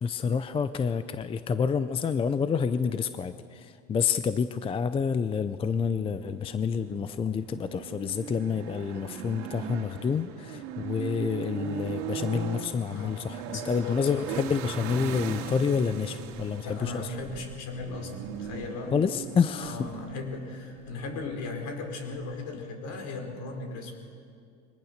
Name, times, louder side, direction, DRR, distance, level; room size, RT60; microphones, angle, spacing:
voice 1, 0.0-17.2 18.9-19.9, left 6 dB, 15° left, 12 dB, 0.4 m, -28 dB
sound 1, 5.8-22.5, right 7 dB, 60° right, 2.3 m, -39 dB
voice 2, 13.5-14.1 16.6-18.9 19.6-23.9, left 3 dB, 50° left, 4 dB, 4.4 m, -37 dB
23.0 x 19.0 x 6.6 m, 2.3 s
supercardioid pair, 120°, 36 cm